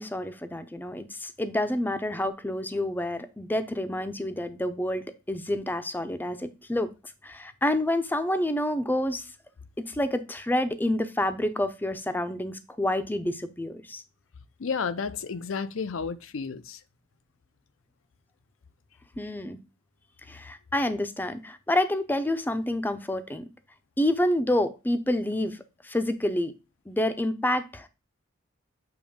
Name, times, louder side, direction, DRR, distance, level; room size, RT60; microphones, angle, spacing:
voice 1, 0.0-6.9 7.2-9.3 9.9-14.0 19.2-19.6 20.3-23.5 24.0-26.5 26.9-27.9, left 1 dB, 10° left, 0.5 m, -28 dB
voice 2, 14.6-16.8, left 5 dB, 80° left, 0.5 m, -32 dB
7.0 x 3.1 x 5.0 m
head